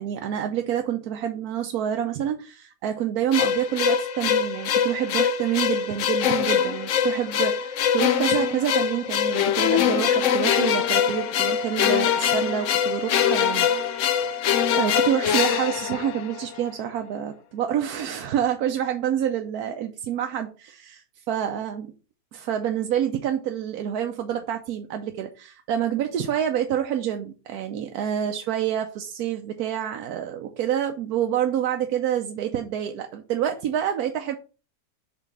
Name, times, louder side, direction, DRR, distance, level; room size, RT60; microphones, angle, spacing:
voice 1, 0.0-21.9 22.3-34.4, right 10 dB, 90° right, 5 dB, 1.2 m, -27 dB
sound 1, 3.3-16.6, left 8 dB, 65° left, 0.9 m, -23 dB
5.8 x 3.5 x 5.9 m, 0.35 s
omnidirectional pair, 1.5 m